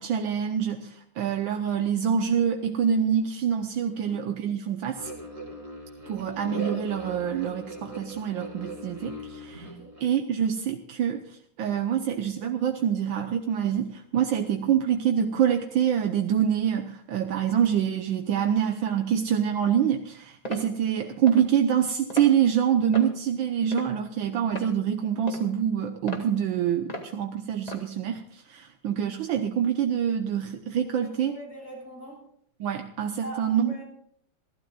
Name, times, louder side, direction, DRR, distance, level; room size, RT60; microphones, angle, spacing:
voice 1, 0.0-5.1 6.1-31.3 32.6-33.8, right 8 dB, 75° right, 5 dB, 1.6 m, -26 dB
sound 1, 5.0-10.0, right 1 dB, 20° right, 3.5 m, -39 dB
sound 2, 20.4-20.7 21.3-21.5 22.1-22.3 22.9-23.2 23.7-24.1 24.5-24.7 25.3-25.5 26.1-26.3 26.9-27.1 27.7-27.9, equal, 20° left, 1.9 m, -36 dB
voice 2, 31.0-32.3 33.2-33.8, right 1 dB, 45° left, -1 dB, 7.0 m, -42 dB
27.0 x 13.0 x 2.4 m, 0.66 s
omnidirectional pair, 2.2 m